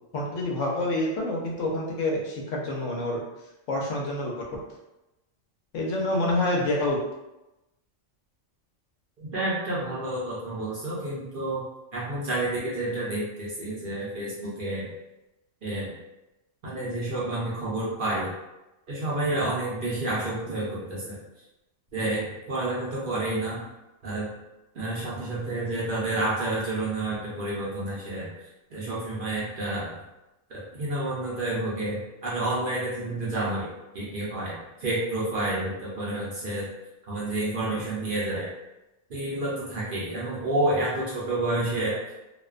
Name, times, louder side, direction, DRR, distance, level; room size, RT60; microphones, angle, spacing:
voice 1, 0.1-3.2 3.7-4.5 5.7-7.0, left 1 dB, 80° left, -2 dB, 0.9 m, -27 dB
voice 2, 9.2-11.6 11.9-14.9 15.6-15.9 16.6-18.3 18.9-21.2 21.9-23.6 24.0-24.3 24.7-28.3 28.7-29.9 30.5-33.7 33.9-36.7 37.1-38.5 39.1-42.0, right 2 dB, 55° right, -7 dB, 0.7 m, -29 dB
2.5 x 2.1 x 2.4 m, 0.97 s
omnidirectional pair, 1.3 m